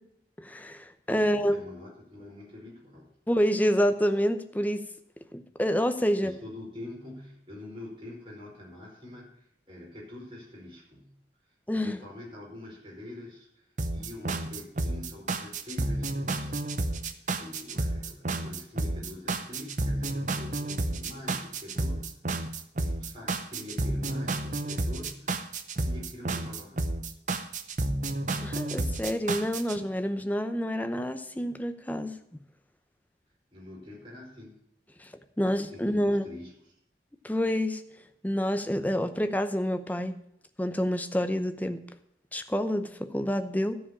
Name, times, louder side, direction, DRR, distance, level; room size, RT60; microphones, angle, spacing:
voice 1, 0.4-1.6 3.3-4.9 5.3-6.3 11.7-12.0 28.4-32.2 35.0-36.3 37.2-37.8 38.2-40.2 40.6-41.8 42.3-43.8, equal, 10° left, 8 dB, 0.7 m, -28 dB
voice 2, 1.1-3.1 6.2-11.1 11.7-13.7 13.9-22.2 22.5-26.9 33.5-34.6 35.4-36.5, left 1 dB, 30° right, -4 dB, 4.8 m, -45 dB
sound 1, 13.8-29.8, right 2 dB, 45° right, 0.8 m, -31 dB
13.0 x 5.0 x 8.3 m, 0.75 s
head